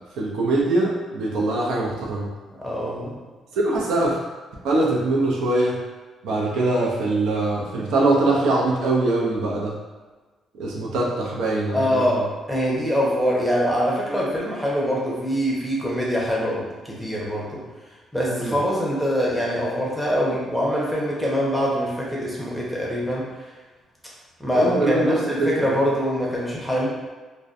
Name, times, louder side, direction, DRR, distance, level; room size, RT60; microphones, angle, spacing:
voice 1, 0.2-2.3 3.5-4.2 4.6-5.8 6.2-9.7 10.6-12.2 18.3-18.6 24.5-25.5, right 2 dB, 85° right, -3 dB, 0.5 m, -22 dB
voice 2, 2.6-3.1 11.7-17.6 18.1-23.3 24.4-26.9, equal, ahead, -5 dB, 0.7 m, -24 dB
2.5 x 2.1 x 2.4 m, 1.3 s
cardioid pair, 90°, 0 cm